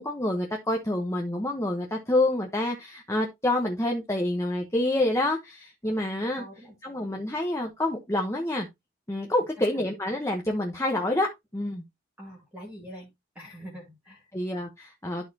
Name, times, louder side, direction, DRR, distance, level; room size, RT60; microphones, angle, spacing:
voice 1, 0.0-6.4 6.8-8.7 9.1-11.8 14.3-15.3, left 1 dB, 15° left, 1.0 m, -27 dB
voice 2, 6.3-6.7 12.2-13.1 13.3-14.2, equal, 5° right, 2.4 m, -44 dB
12.5 x 4.2 x 2.8 m
head